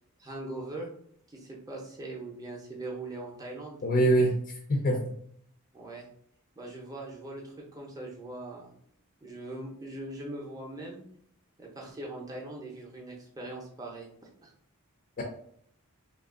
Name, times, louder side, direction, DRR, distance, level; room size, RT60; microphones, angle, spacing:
voice 1, 0.2-0.9 1.3-3.8 5.7-6.1 6.6-8.7 9.2-11.0 11.6-14.1 14.4-14.5, right 2 dB, 15° right, -2 dB, 0.6 m, -41 dB
voice 2, 3.8-5.2 15.2-15.3, right 1 dB, 40° left, 0 dB, 0.4 m, -25 dB
2.9 x 2.4 x 3.6 m, 0.66 s
head